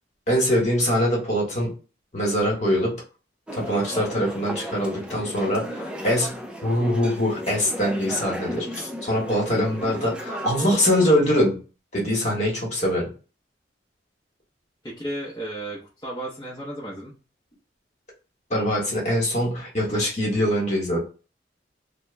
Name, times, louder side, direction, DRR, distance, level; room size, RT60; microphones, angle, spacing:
voice 1, 0.3-1.7 2.1-3.0 3.5-11.6 11.9-13.1 18.5-21.0, equal, 40° left, -2 dB, 1.1 m, -23 dB
sound 1, 3.5-11.1, equal, 5° right, 0.3 m, -35 dB
voice 2, 14.8-17.1, right 1 dB, 20° left, -7 dB, 0.7 m, -34 dB
2.9 x 2.1 x 3.2 m, 0.35 s
head